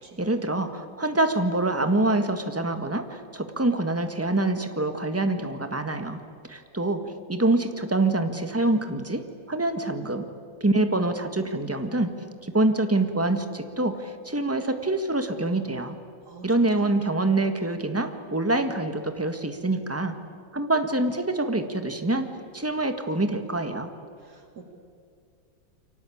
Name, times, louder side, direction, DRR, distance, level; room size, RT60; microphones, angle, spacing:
voice 1, 0.2-6.2 6.5-7.0 7.3-9.2 9.5-10.3 10.6-12.1 12.4-16.0 16.4-20.1 20.5-22.3 22.5-23.9, right 2 dB, 10° right, 7 dB, 1.5 m, -25 dB
voice 2, 16.2-16.9 24.2-24.7, right 5 dB, 55° right, 3 dB, 2.9 m, -47 dB
29.0 x 24.0 x 8.6 m, 2.4 s
omnidirectional pair, 2.1 m